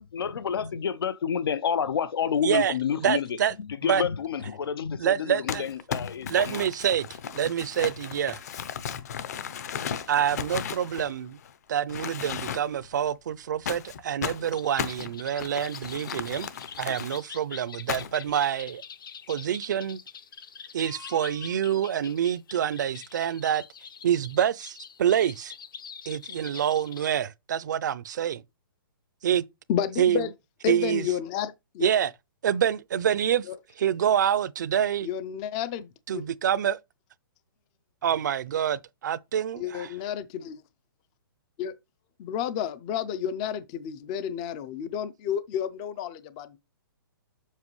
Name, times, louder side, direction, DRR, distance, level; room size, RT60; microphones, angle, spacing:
voice 1, 0.0-3.3 3.8-6.6, left 7 dB, 90° left, 0.7 m, -29 dB
voice 2, 2.4-2.7 3.0-3.5 3.8-4.0 5.0-5.6 6.3-7.1 7.3-8.4 10.1-11.4 11.7-16.5 16.8-18.8 19.3-20.0 20.7-23.6 24.0-25.5 26.1-28.4 29.2-29.4 30.0-30.3 30.7-31.1 31.8-32.1 32.4-33.5 33.8-35.1 36.1-36.8 38.0-39.9, right 9 dB, 50° right, 0.5 m, -26 dB
Crumpling crinkling, 5.5-11.5 11.9-12.9 13.7-17.2 17.9-18.3, left 8 dB, 45° left, 0.7 m, -35 dB
sound 1, 14.5-27.2, left 7 dB, 65° left, 1.0 m, -45 dB
voice 3, 29.7-30.3 30.6-31.9 33.5-33.6 35.0-36.2 39.6-40.6 41.6-41.7 42.2-46.6, left 9 dB, 15° left, 0.3 m, -31 dB
7.4 x 5.8 x 3.1 m
hypercardioid pair, 170°, 12 cm